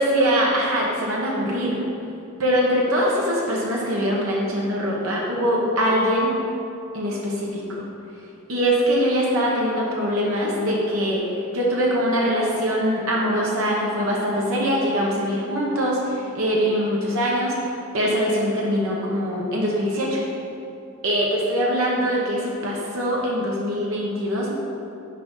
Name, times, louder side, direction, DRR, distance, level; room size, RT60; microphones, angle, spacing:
voice 1, 0.0-1.8 2.4-6.4 6.9-7.8 8.5-20.2 21.0-24.5, equal, 75° right, -4 dB, 1.1 m, -23 dB
6.0 x 4.7 x 5.4 m, 2.7 s
head